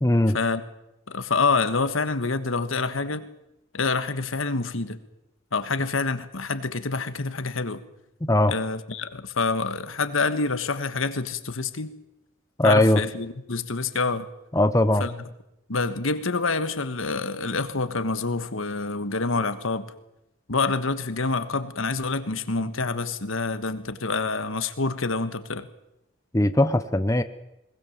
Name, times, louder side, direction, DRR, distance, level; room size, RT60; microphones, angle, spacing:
voice 1, 0.0-0.4 8.2-8.5 12.6-13.0 14.5-15.0 26.3-27.2, left 1 dB, 15° left, 10 dB, 0.8 m, -19 dB
voice 2, 1.1-3.3 3.7-5.0 5.5-7.8 8.5-11.9 12.6-14.3 15.0-15.1 15.7-19.9 20.5-25.7, left 4 dB, 80° left, 11 dB, 1.4 m, -27 dB
21.0 x 20.0 x 7.3 m, 0.88 s
head